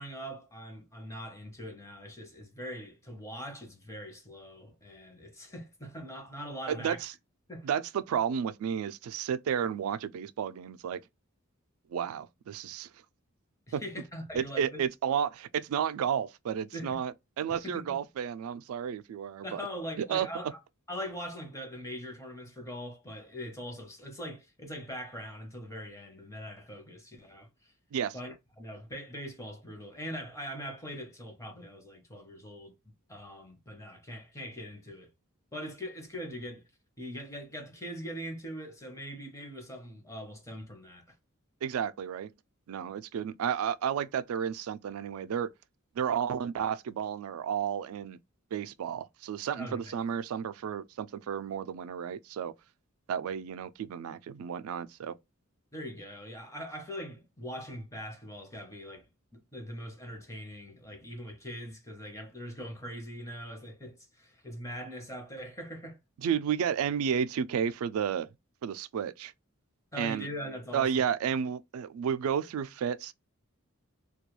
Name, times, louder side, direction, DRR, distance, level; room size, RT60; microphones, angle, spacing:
voice 1, 0.0-7.0 7.5-7.7 13.7-14.9 16.7-17.0 17.5-18.0 19.4-20.6 20.9-27.7 28.1-32.7 33.1-35.1 35.5-36.7 37.0-41.2 49.5-50.0 55.7-59.1 59.3-66.0 69.9-71.1, equal, 15° left, 0.7 m, -42 dB
voice 2, 6.7-7.1 7.6-11.0 11.9-12.9 13.7-13.8 14.4-19.6 20.0-20.3 27.9-28.2 41.6-42.3 42.7-45.5 46.0-48.2 48.5-52.5 53.1-55.1 66.2-68.3 68.6-69.3 70.0-70.3 70.7-73.1, right 8 dB, 80° right, 0.3 m, -32 dB
2.3 x 2.2 x 3.0 m
head